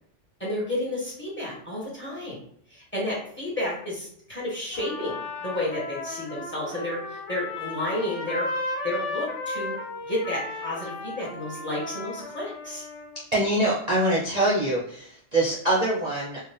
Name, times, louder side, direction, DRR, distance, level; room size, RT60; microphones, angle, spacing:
voice 1, 0.4-2.4 2.7-8.5 8.8-9.7 10.1-12.8, left 1 dB, 10° left, -5 dB, 1.5 m, -31 dB
Trumpet, 4.7-13.2, left 3 dB, 75° left, 1.0 m, -35 dB
voice 2, 13.3-16.4, right 1 dB, 35° right, -7 dB, 1.0 m, -24 dB
4.4 x 2.5 x 3.5 m, 0.65 s
omnidirectional pair, 1.3 m